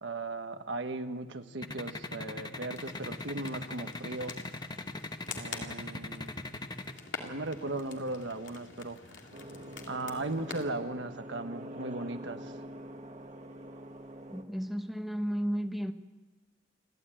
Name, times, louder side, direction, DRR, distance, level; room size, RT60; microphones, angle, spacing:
voice 1, 0.0-4.3 5.3-6.4 7.2-9.0 9.9-12.5, right 2 dB, 75° right, 7 dB, 1.4 m, -37 dB
sound 1, 1.6-6.9, left 2 dB, 20° left, 1.0 m, -39 dB
sound 2, 2.7-10.7, left 4 dB, 80° left, 2.7 m, -47 dB
sound 3, 9.3-14.4, right 1 dB, 40° right, 1.4 m, -45 dB
voice 2, 14.3-15.9, equal, ahead, 6 dB, 0.9 m, -33 dB
29.0 x 12.5 x 9.0 m, 1.3 s
head